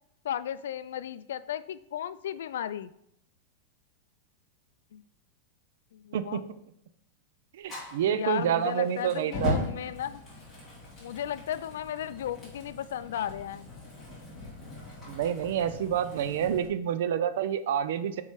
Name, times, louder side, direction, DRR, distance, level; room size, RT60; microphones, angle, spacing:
voice 1, 0.2-2.9 4.9-5.0 5.9-6.4 8.1-10.2 11.0-13.7, left 10 dB, 85° left, 15 dB, 0.3 m, -35 dB
voice 2, 6.1-6.4 7.5-9.6 15.1-18.2, right 9 dB, 70° right, 12 dB, 0.5 m, -28 dB
Fire, 7.6-16.6, left 2 dB, 5° left, 2.5 m, -39 dB
5.6 x 4.7 x 4.6 m, 0.74 s
supercardioid pair, 165°, 0 cm